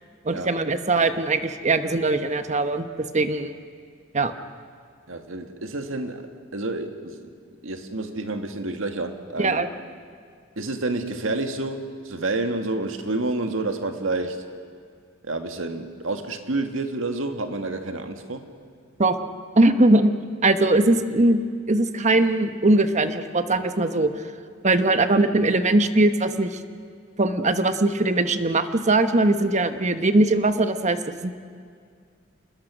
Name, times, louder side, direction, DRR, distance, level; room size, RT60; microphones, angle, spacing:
voice 1, 0.2-3.5 4.1-4.3 9.4-9.7 19.0-19.2 19.6-20.2 20.4-24.1 24.6-26.6 27.2-31.3, right 2 dB, 35° right, 9 dB, 1.1 m, -21 dB
voice 2, 5.1-7.2 7.6-9.7 10.6-14.4 15.2-18.4, right 2 dB, 90° right, 6 dB, 1.9 m, -29 dB
28.0 x 21.0 x 6.2 m, 2.2 s
head